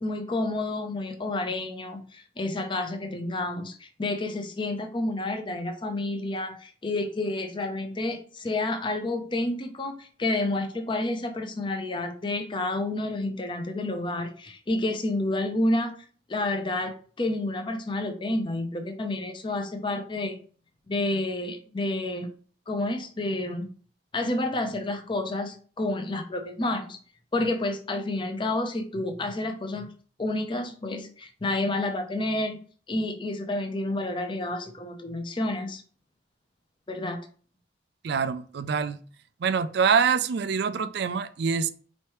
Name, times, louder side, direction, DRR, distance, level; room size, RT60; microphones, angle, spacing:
voice 1, 0.0-15.9 16.3-20.4 20.9-22.3 22.7-23.7 24.1-27.0 27.3-29.9 30.2-32.6 32.9-35.8 36.9-37.2, left 2 dB, 25° left, 0.6 m, -29 dB
voice 2, 38.0-39.0 39.4-41.7, right 6 dB, 60° right, 0.4 m, -25 dB
4.4 x 3.2 x 3.0 m
head